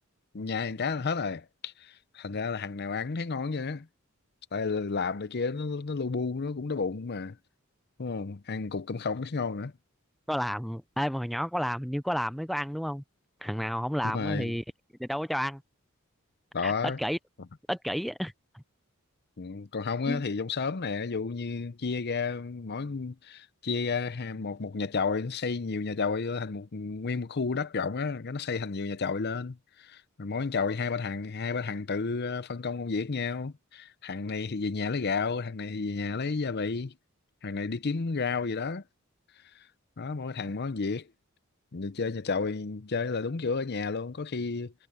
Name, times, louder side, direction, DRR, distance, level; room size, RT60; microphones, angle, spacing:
voice 1, 0.3-3.9 4.5-7.4 8.0-9.7 14.0-14.5 16.5-17.0 19.4-36.9 37.4-38.8 40.0-41.1 41.7-44.7, left 4 dB, 50° left, 0.7 m, -31 dB
voice 2, 10.3-13.0 13.4-14.6 15.0-15.6 16.6-17.2 17.7-18.6 20.1-20.2, equal, ahead, 0.4 m, -31 dB
head